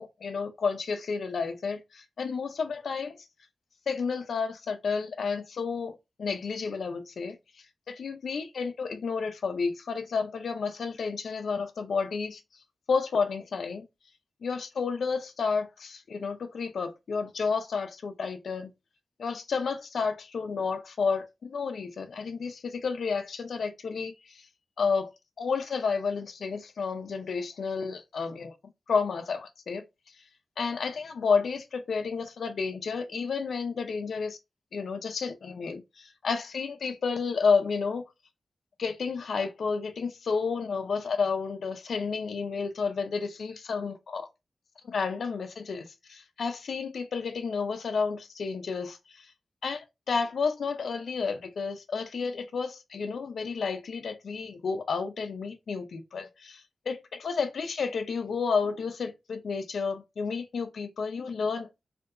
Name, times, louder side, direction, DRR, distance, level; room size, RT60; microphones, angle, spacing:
voice 1, 0.0-3.2 3.9-7.4 7.9-12.4 12.9-13.8 14.4-18.7 19.2-24.5 24.8-25.1 25.4-28.5 28.9-29.8 30.6-34.4 34.7-38.1 38.8-44.3 44.8-49.3 49.6-61.9, left 5 dB, 80° left, 0.6 m, -31 dB
3.4 x 2.7 x 2.5 m
wide cardioid pair, 95°, 0 cm